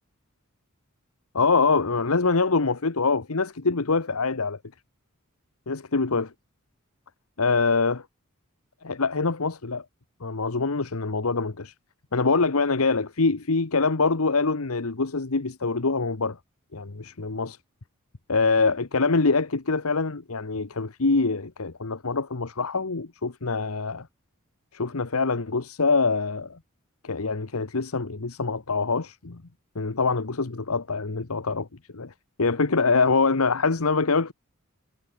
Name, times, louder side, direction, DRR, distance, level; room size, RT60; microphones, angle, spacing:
voice 1, 1.3-4.6 5.7-6.3 7.4-8.0 8.8-9.8 10.2-11.7 12.1-16.4 16.7-17.6 18.3-24.1 24.7-26.6 27.0-29.4 29.7-31.7 31.9-32.1 32.4-34.3, left 4 dB, 80° left, 1.2 m, -24 dB
head